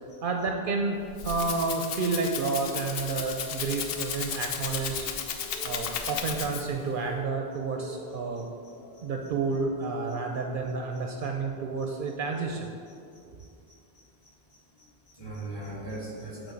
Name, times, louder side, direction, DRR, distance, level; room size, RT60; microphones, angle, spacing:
voice 1, 0.2-1.0 1.2-5.1 5.6-8.5 9.0-12.7, right 4 dB, 65° right, 2 dB, 0.7 m, -30 dB
Rattle (instrument), 0.9-6.9, left 7 dB, 70° left, 0.8 m, -34 dB
sound 1, 4.9-12.6, left 4 dB, 50° left, 0.4 m, -49 dB
voice 2, 8.9-9.3 11.8-11.9 12.9-16.5, right 2 dB, 25° left, -6 dB, 1.6 m, -44 dB
7.0 x 3.8 x 5.2 m, 2.4 s
omnidirectional pair, 1.0 m